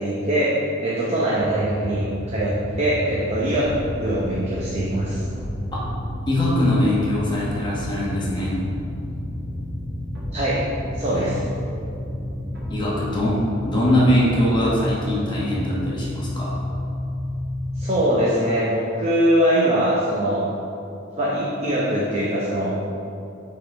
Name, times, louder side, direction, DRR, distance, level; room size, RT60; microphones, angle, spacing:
voice 1, 0.0-3.7 4.0-5.2 10.3-10.6 10.9-11.4 12.4-12.5 17.7-20.4 21.2-22.7, right 1 dB, 35° right, -6 dB, 0.8 m, -22 dB
sound 1, 1.4-17.9, left 1 dB, 55° left, 1.0 m, -31 dB
sound 2, 3.6-14.6, equal, 55° right, 1.1 m, -38 dB
voice 2, 6.3-8.5 11.2-11.3 12.7-13.4 13.6-16.5, left 1 dB, 25° left, -6 dB, 1.2 m, -22 dB
9.3 x 3.9 x 3.4 m, 2.7 s
head